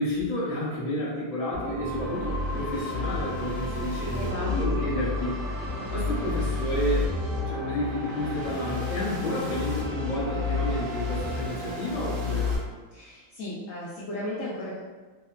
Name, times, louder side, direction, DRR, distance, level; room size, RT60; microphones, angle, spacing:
voice 1, 0.0-5.4 5.9-7.1 7.4-12.6, left 1 dB, 40° left, -8 dB, 0.6 m, -30 dB
sound 1, 1.5-12.6, left 3 dB, 75° right, 0.5 m, -30 dB
voice 2, 4.1-4.5 12.9-14.8, left 1 dB, 80° left, -6 dB, 0.7 m, -35 dB
2.9 x 2.0 x 2.3 m, 1.3 s
omnidirectional pair, 1.9 m